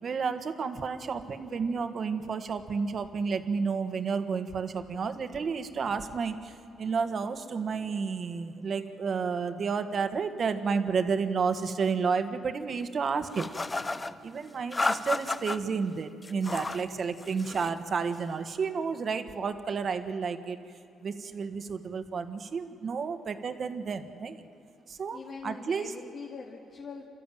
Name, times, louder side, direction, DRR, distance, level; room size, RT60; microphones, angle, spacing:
voice 1, 0.0-13.5 14.2-20.6 21.0-24.4 24.9-25.9, right 5 dB, 50° right, 8 dB, 1.5 m, -31 dB
sound 1, 13.3-14.1 14.7-15.6 16.2-16.9 17.2-17.8, left 3 dB, 25° left, 0.8 m, -32 dB
voice 2, 25.1-27.0, left 4 dB, 50° left, -2 dB, 2.5 m, -43 dB
28.0 x 13.5 x 9.2 m, 2.5 s
cardioid pair, 90°, 0 cm